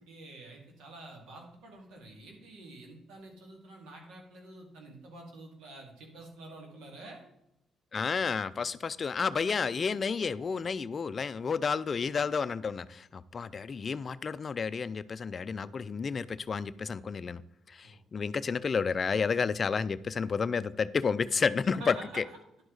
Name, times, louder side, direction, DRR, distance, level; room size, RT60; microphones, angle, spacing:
voice 1, 0.1-7.2 17.8-18.0 21.8-22.4, right 2 dB, 85° right, 1 dB, 2.2 m, -48 dB
voice 2, 7.9-17.4 17.8-22.2, left 5 dB, 40° left, 14 dB, 0.4 m, -31 dB
10.5 x 5.0 x 3.9 m, 0.83 s
cardioid pair, 90°, 0 cm